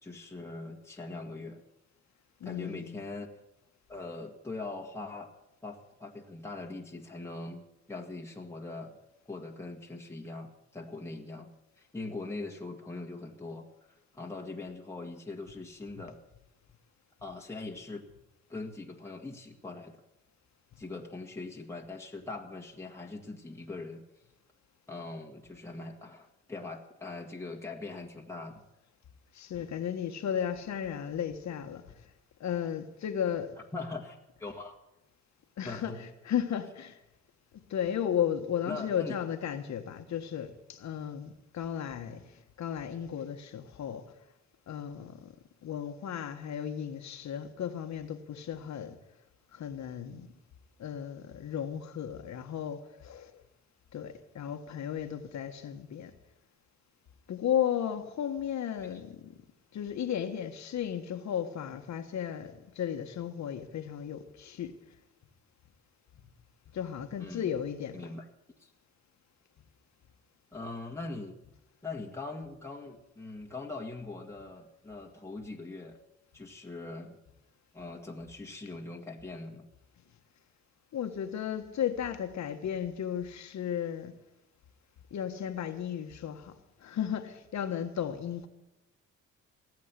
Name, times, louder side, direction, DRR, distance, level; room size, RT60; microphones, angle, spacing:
voice 1, 0.0-1.6 2.4-3.3 3.9-5.3 5.6-9.0 9.3-11.5 11.8-16.2 17.2-18.1 18.5-20.0 20.8-24.0 24.9-28.6 33.7-34.8 35.6-36.0 38.7-39.2 58.8-59.0 67.2-67.5 67.9-68.3 68.6-68.7 70.5-71.4 71.8-76.0 76.3-77.2 77.7-79.7, left 3 dB, 10° left, 2.0 m, -41 dB
voice 2, 2.4-3.1 16.0-16.1 29.3-32.1 32.4-33.5 35.6-37.0 37.7-44.1 44.7-45.3 45.6-49.0 49.5-50.3 50.8-53.4 53.9-56.1 57.3-59.3 59.7-64.8 66.7-68.2 80.9-84.2 85.1-88.5, left 9 dB, 65° left, 1.6 m, -35 dB
17.5 x 7.7 x 9.8 m
cardioid pair, 90°, 30 cm